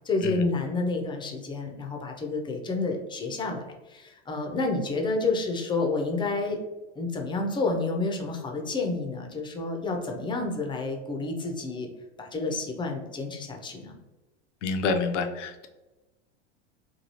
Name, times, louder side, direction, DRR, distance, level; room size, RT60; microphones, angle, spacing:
voice 1, 0.1-6.6 7.0-11.9 12.2-14.0, left 3 dB, 15° left, 2 dB, 0.5 m, -29 dB
voice 2, 14.6-15.7, left 4 dB, 85° left, 6 dB, 0.5 m, -28 dB
3.1 x 2.3 x 2.7 m, 1.1 s
hypercardioid pair, 100°, 35 cm